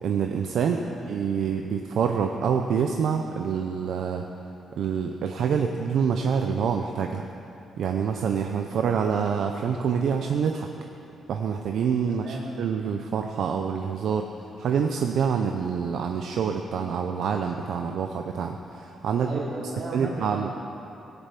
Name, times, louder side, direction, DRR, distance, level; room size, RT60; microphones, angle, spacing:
voice 1, 0.0-4.3 4.8-7.3 7.8-10.7 11.3-14.3 14.6-19.4 19.9-20.5, right 7 dB, 70° right, 4 dB, 0.7 m, -26 dB
voice 2, 12.1-12.4 19.2-20.6, right 2 dB, 45° right, -5 dB, 3.5 m, -36 dB
17.0 x 6.9 x 8.4 m, 2.8 s
cardioid pair, 140°, 0 cm